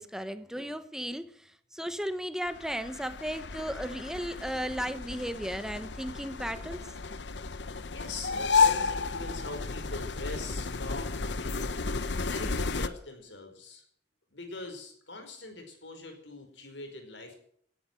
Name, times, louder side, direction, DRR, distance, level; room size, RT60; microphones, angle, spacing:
voice 1, 0.0-6.8, equal, 5° right, 1.0 m, -35 dB
sound 1, 2.5-12.9, left 5 dB, 75° left, 0.9 m, -32 dB
voice 2, 7.9-11.7 12.3-13.8 14.3-17.3, left 3 dB, 90° left, 5.1 m, -42 dB
17.5 x 10.0 x 7.6 m
head